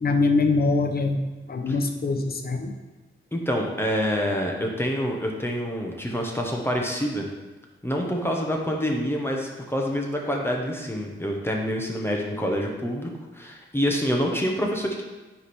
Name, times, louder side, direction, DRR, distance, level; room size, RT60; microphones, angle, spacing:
voice 1, 0.0-1.2 1.5-2.7, left 3 dB, 45° left, 5 dB, 0.7 m, -23 dB
voice 2, 3.3-7.3 7.8-15.0, equal, 10° left, 0 dB, 0.9 m, -27 dB
9.7 x 3.3 x 4.3 m, 1.2 s
wide cardioid pair, 125°, 21 cm